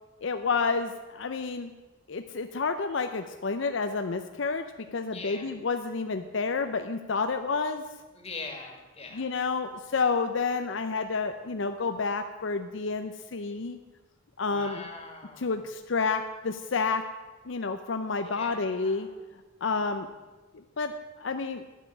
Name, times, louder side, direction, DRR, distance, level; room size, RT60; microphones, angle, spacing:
voice 1, 0.2-1.7 2.1-4.7 4.9-7.8 9.1-13.8 14.4-14.8 15.4-17.0 17.5-19.1 19.6-20.1 20.8-20.9 21.2-21.6, left 4 dB, 65° left, 8 dB, 0.6 m, -29 dB
voice 2, 5.1-5.5 8.1-9.3 14.4-15.6 18.2-19.1, left 3 dB, 30° left, 2 dB, 2.0 m, -42 dB
9.9 x 7.5 x 9.4 m, 1.2 s
head